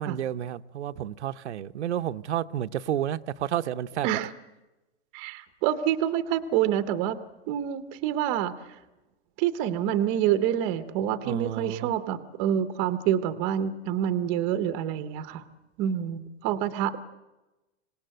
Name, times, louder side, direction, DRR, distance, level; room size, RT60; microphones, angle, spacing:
voice 1, 0.0-4.2 11.2-11.9, right 11 dB, 85° right, 0.8 m, -31 dB
voice 2, 5.1-7.2 7.5-8.8 9.4-15.4 15.8-17.0, right 10 dB, 20° right, 0.7 m, -27 dB
26.0 x 18.0 x 7.8 m
hypercardioid pair, 170°, 33 cm